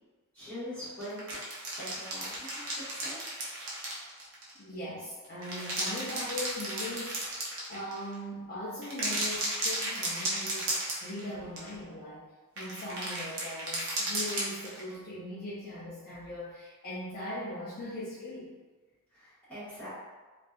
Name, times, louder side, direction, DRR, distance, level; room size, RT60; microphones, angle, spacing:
voice 1, 0.3-1.4 1.8-3.2 19.1-19.9, equal, 10° left, -16 dB, 1.2 m, -43 dB
sound 1, 1.0-4.6 5.2-8.1 8.8-11.3 11.6-11.7 12.6-14.9, right 1 dB, 55° right, 0.6 m, -34 dB
voice 2, 4.5-7.2 7.7-18.6, left 1 dB, 45° left, -9 dB, 0.4 m, -40 dB
2.6 x 2.3 x 2.3 m, 1.3 s
head